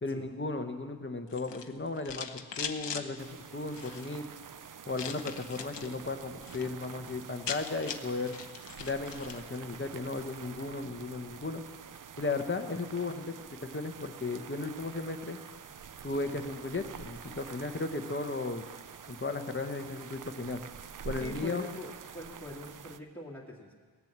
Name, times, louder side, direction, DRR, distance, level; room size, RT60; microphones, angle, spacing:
voice 1, 0.0-2.3 2.6-4.3 4.9-8.4 8.8-11.6 12.2-13.3 13.7-15.4 16.0-18.6 19.1-20.6 21.0-21.7, left 3 dB, 25° left, 7 dB, 0.9 m, -35 dB
sound 1, 1.3-3.1 3.7-4.2 4.9-5.9 6.3-6.7 7.0-7.1 7.2-9.4, left 7 dB, 60° left, 0.8 m, -40 dB
sound 2, 3.2-23.0, right 7 dB, 45° right, 0.5 m, -47 dB
voice 2, 21.2-23.7, left 2 dB, 5° left, -4 dB, 2.2 m, -44 dB
18.0 x 7.6 x 7.4 m, 1.5 s
wide cardioid pair, 100°, 48 cm